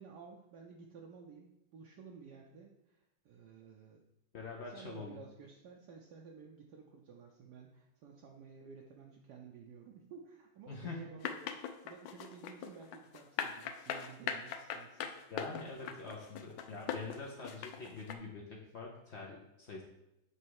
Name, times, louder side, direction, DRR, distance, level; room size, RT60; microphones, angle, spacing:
voice 1, 0.0-4.0 4.7-15.1, right 6 dB, 70° right, 0 dB, 1.1 m, -53 dB
voice 2, 4.3-5.2 10.7-11.0 15.3-19.8, left 4 dB, 60° left, -2 dB, 0.7 m, -45 dB
sound 1, 11.2-18.1, left 8 dB, 85° left, 1.3 m, -40 dB
6.2 x 3.5 x 4.7 m, 0.87 s
omnidirectional pair, 2.0 m